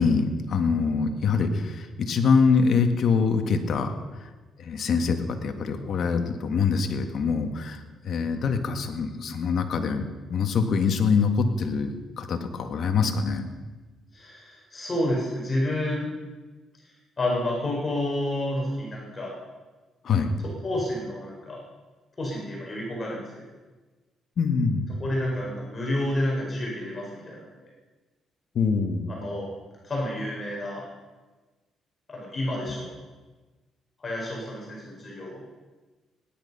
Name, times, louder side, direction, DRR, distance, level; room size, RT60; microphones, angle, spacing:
voice 1, 0.0-3.9 4.6-10.0 10.3-13.5 20.0-20.4 24.4-24.9 28.5-29.1, left 5 dB, 60° left, 6 dB, 1.7 m, -24 dB
voice 2, 14.1-16.1 17.2-19.3 20.4-21.6 22.2-23.2 25.0-27.7 29.1-29.5 29.8-30.8 32.1-32.9 34.0-35.4, left 1 dB, 30° left, -3 dB, 4.6 m, -30 dB
17.5 x 11.0 x 5.6 m, 1.3 s
cardioid pair, 90°, 0 cm